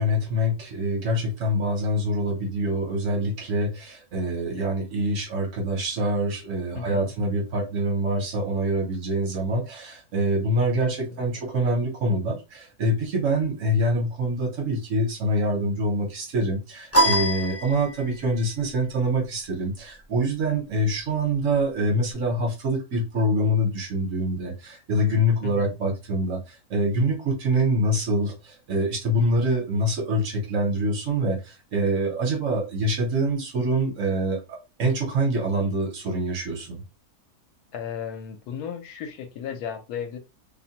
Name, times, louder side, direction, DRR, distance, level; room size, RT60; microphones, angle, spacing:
voice 1, 0.0-26.4 26.7-36.8, right 1 dB, 60° right, 1.1 m, -25 dB
voice 2, 6.7-7.1 10.8-11.2 18.2-18.5 25.4-25.8 37.7-40.2, left 7 dB, 80° left, 1.1 m, -35 dB
sound 1, 16.9-18.3, right 1 dB, 15° left, 0.5 m, -23 dB
2.7 x 2.1 x 2.7 m
omnidirectional pair, 1.7 m